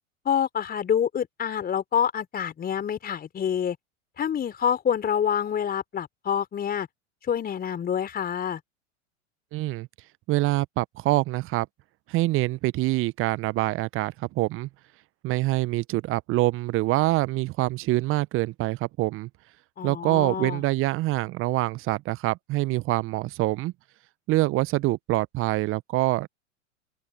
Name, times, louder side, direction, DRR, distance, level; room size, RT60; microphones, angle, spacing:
voice 1, 0.2-3.8 4.2-6.9 7.3-8.6 19.8-20.6, left 8 dB, 25° left, 4.3 m, -27 dB
voice 2, 9.5-9.9 10.3-11.7 12.1-14.7 15.2-19.3 19.8-23.7 24.3-26.3, right 19 dB, 35° right, 1.0 m, -25 dB
figure-of-eight pair, 90°, 37 cm